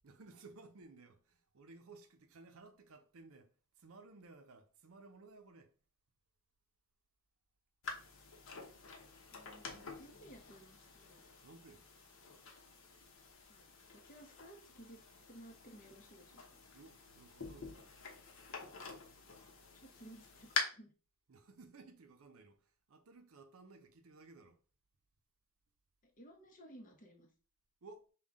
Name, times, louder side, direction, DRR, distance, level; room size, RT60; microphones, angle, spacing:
voice 1, 0.0-5.7 11.4-11.9 16.7-17.8 21.3-24.6 27.8-28.1, right 3 dB, 65° right, 0.6 m, -58 dB
sound 1, 7.8-20.6, left 5 dB, 60° left, 0.9 m, -47 dB
voice 2, 9.3-11.2 13.5-15.0 15.3-16.6 19.7-20.9 26.0-27.3, right 1 dB, 35° left, 0.9 m, -57 dB
5.5 x 2.3 x 3.5 m
head